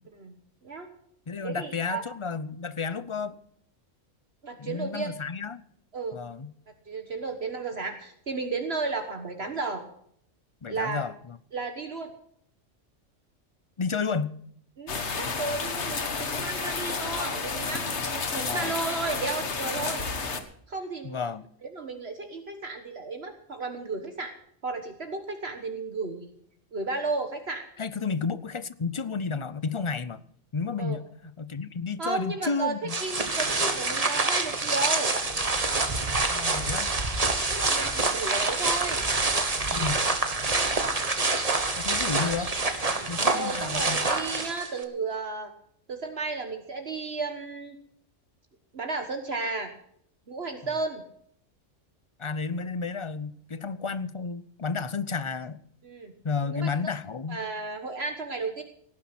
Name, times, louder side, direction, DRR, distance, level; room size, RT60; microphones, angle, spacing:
voice 1, 0.2-0.9 1.4-2.0 4.4-5.1 5.9-6.2 6.9-9.8 10.7-11.1 11.5-12.1 14.8-20.0 20.7-21.2 21.7-24.3 24.6-26.3 26.7-27.6 30.8-31.0 32.0-32.7 33.0-35.2 37.5-39.1 42.1-42.3 43.3-45.5 45.9-47.7 48.7-49.7 50.3-51.0 55.8-56.1 56.5-56.7 57.3-58.6, right 3 dB, 55° right, 5 dB, 1.6 m, -33 dB
voice 2, 1.3-3.4 4.6-5.6 6.1-6.5 10.6-11.4 13.8-14.3 18.5-18.7 21.0-21.5 27.8-30.2 30.5-33.0 36.3-36.9 39.7-40.0 41.8-42.5 43.1-44.1 52.2-55.6 56.2-57.4, left 5 dB, 35° left, 15 dB, 0.5 m, -32 dB
sound 1, 14.9-20.4, left 4 dB, 60° left, 1.7 m, -31 dB
sound 2, 32.9-44.8, right 3 dB, 30° right, 1.4 m, -26 dB
18.0 x 10.5 x 6.0 m, 0.67 s
omnidirectional pair, 1.3 m